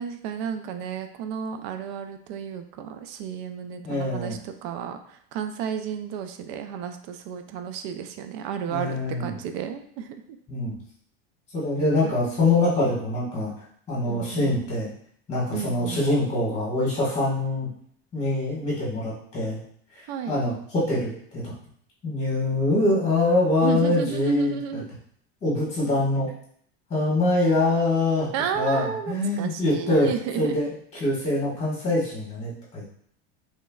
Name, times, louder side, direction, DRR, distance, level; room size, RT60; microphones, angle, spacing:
voice 1, 0.0-10.4 12.0-12.1 14.0-14.6 15.5-16.0 20.1-20.4 23.6-24.9 28.3-30.6, right 7 dB, 60° right, 8 dB, 0.4 m, -32 dB
voice 2, 3.8-4.4 8.7-9.3 10.5-10.7 11.5-13.5 13.9-14.9 15.3-17.7 18.1-19.6 20.3-21.5 22.0-24.8 25.4-26.3 26.9-28.3 28.5-30.1 30.4-30.7 31.0-32.9, left 2 dB, 20° left, -7 dB, 1.5 m, -24 dB
3.2 x 3.1 x 2.3 m, 0.63 s
supercardioid pair, 105°, 31 cm